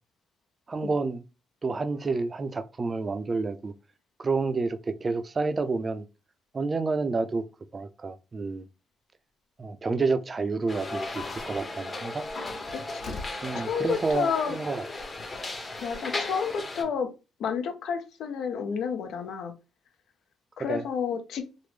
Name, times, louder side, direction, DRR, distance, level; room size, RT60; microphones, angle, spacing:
voice 1, 0.7-1.2 1.6-3.7 4.2-6.0 6.5-7.4 7.7-8.6 9.6-12.3 13.4-14.8 20.7-20.8, right 3 dB, 35° right, 0.4 m, -29 dB
Slam, 10.6-10.9 12.5-12.6 13.0-13.5, left 3 dB, 60° left, 1.0 m, -40 dB
sound 1, 10.7-16.8, left 2 dB, 30° left, 0.9 m, -36 dB
voice 2, 12.7-13.2 13.5-14.6 15.8-17.1 17.4-19.5 20.6-21.4, left 6 dB, 75° left, 0.6 m, -30 dB
3.4 x 2.0 x 3.2 m
cardioid pair, 90°, 0 cm